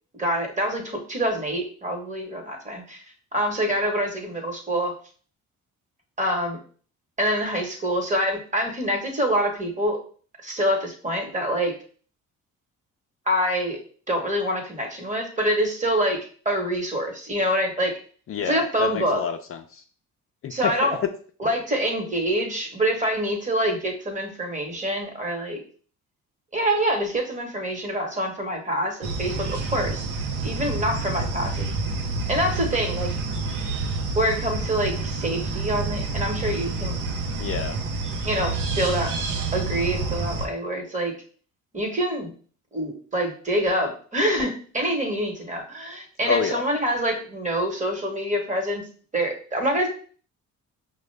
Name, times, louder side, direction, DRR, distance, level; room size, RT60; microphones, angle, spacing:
voice 1, 0.1-3.0 3.3-4.9 6.2-6.6 7.2-10.0 10.4-11.7 13.3-13.8 14.1-16.2 16.4-17.9 18.5-19.2 20.5-21.0 21.4-25.6 26.5-30.1 30.4-31.7 32.3-33.1 34.2-37.0 38.2-39.1 39.5-41.1 41.7-42.3 42.7-48.8 49.1-49.9, equal, 25° right, 2 dB, 1.2 m, -26 dB
voice 2, 18.3-19.8 20.4-20.9 37.4-37.8 46.2-46.6, left 6 dB, 45° left, 5 dB, 0.5 m, -28 dB
sound 1, 29.0-40.5, right 3 dB, 85° right, 0.7 m, -28 dB
5.1 x 2.2 x 3.3 m, 0.44 s
cardioid pair, 90°, 30 cm